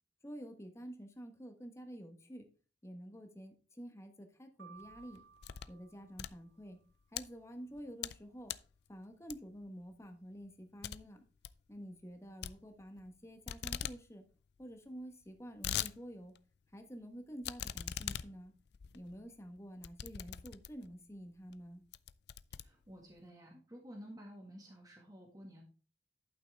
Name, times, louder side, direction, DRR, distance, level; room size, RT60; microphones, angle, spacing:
voice 1, 0.2-2.4 2.8-5.2 5.7-6.8 7.1-8.5 8.9-11.2 11.7-14.2 14.6-16.3 16.7-18.5 18.9-21.8, equal, 15° left, 5 dB, 1.3 m, -49 dB
sound 1, 4.6-6.7, right 6 dB, 80° right, 0.8 m, -59 dB
sound 2, 4.8-5.8 6.1-7.2 7.7-8.2 8.5-8.7 9.3-9.7 10.0-10.1 10.4-10.5 10.8-11.0 11.3-11.6 12.4-13.2 13.5-14.0 14.3-14.4 14.6-14.7 15.2-15.9 16.4-16.5 17.4-20.9 21.5-21.6 21.9-23.2, left 10 dB, 65° left, 0.4 m, -42 dB
voice 2, 22.5-25.6, equal, 20° right, -1 dB, 1.8 m, -52 dB
11.5 x 5.9 x 3.4 m, 0.38 s
head